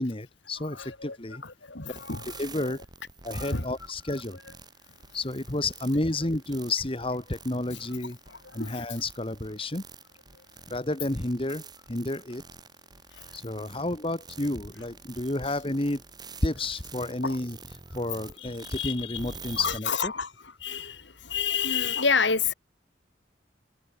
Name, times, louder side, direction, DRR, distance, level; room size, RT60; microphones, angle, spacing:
voice 1, 0.0-1.4 1.8-1.9 2.4-2.8 3.2-4.4 5.1-8.2 8.5-9.8 10.7-12.4 13.3-16.0 16.4-17.6 17.9-20.1, left 2 dB, 30° left, 1.7 m, -31 dB
voice 2, 0.7-1.2 1.4-2.7 3.3-3.6 8.6-8.8 17.2-17.4 18.4-19.2 19.5-20.3 20.6-21.0 21.3-22.5, left 5 dB, 75° left, 3.7 m, -29 dB
sound 1, 1.9-19.8, right 4 dB, 20° right, 5.3 m, -47 dB
head